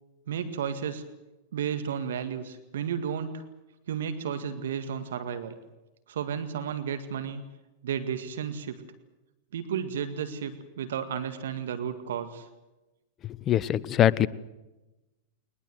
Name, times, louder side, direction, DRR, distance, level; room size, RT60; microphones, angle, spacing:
voice 1, 0.3-1.0 1.5-3.4 3.9-5.5 6.1-7.4 7.8-8.8 9.5-12.5, right 8 dB, 70° right, 9 dB, 1.9 m, -33 dB
voice 2, 13.2-14.3, left 11 dB, 30° left, 19 dB, 0.8 m, -23 dB
22.0 x 20.0 x 7.9 m, 1.0 s
hypercardioid pair, 95°, 0 cm